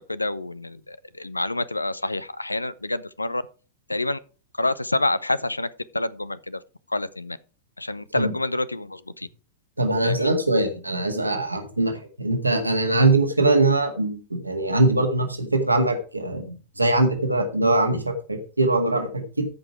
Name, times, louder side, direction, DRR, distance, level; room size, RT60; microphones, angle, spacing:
voice 1, 0.1-3.4 3.9-4.2 4.6-5.7 5.9-6.6 6.9-7.4 7.8-9.3 10.0-10.3, left 2 dB, 85° left, 0.4 m, -27 dB
voice 2, 9.8-19.5, right 2 dB, 85° right, 1.7 m, -22 dB
14.0 x 5.3 x 4.6 m
figure-of-eight pair, 90°, 0 cm